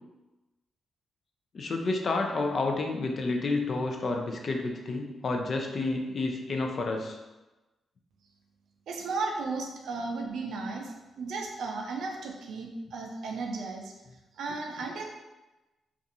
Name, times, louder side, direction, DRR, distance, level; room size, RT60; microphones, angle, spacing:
voice 1, 1.5-7.2, left 3 dB, 55° left, 2 dB, 0.4 m, -30 dB
voice 2, 8.9-13.9 14.3-15.0, right 3 dB, 75° right, 1 dB, 0.4 m, -35 dB
2.6 x 2.4 x 2.6 m, 1.1 s
hypercardioid pair, 45°, 0 cm